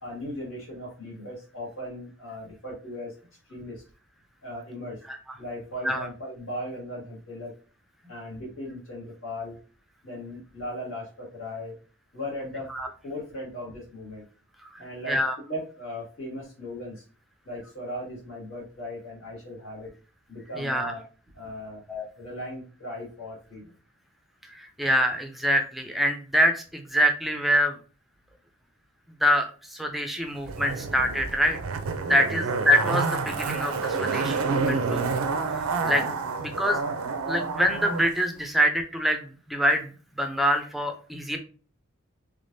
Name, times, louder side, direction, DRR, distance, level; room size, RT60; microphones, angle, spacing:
voice 1, 0.0-3.2 3.5-3.8 4.4-5.0 5.4-7.6 8.0-9.6 10.0-11.8 12.1-12.7 13.0-14.2 14.8-15.2 15.5-17.0 17.4-19.9 20.3-21.0 21.3-21.8 22.2-23.7 32.0-32.7 35.8-36.0, left 1 dB, 70° left, -4 dB, 2.0 m, -37 dB
voice 2, 20.6-20.9 21.9-22.1 24.5-27.8 29.2-31.6 32.1-35.1 35.9-36.0 36.4-36.8 37.3-39.9 40.2-41.4, equal, ahead, 4 dB, 0.4 m, -25 dB
Zipper (clothing), 30.4-38.1 38.4-38.5, right 4 dB, 85° right, 0.5 m, -29 dB
3.5 x 3.4 x 2.6 m, 0.38 s
head